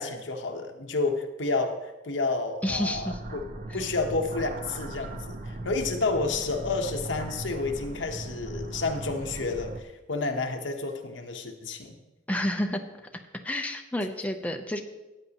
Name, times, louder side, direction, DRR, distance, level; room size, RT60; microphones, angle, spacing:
voice 1, 0.0-3.5 3.7-12.0, left 3 dB, 80° left, 4 dB, 1.1 m, -30 dB
voice 2, 2.6-3.2 3.7-3.8 12.3-12.8 13.4-14.8, left 1 dB, 10° left, 4 dB, 0.7 m, -29 dB
sound 1, 2.9-9.8, right 2 dB, 45° right, 0.8 m, -38 dB
14.5 x 9.2 x 3.0 m, 1.0 s
head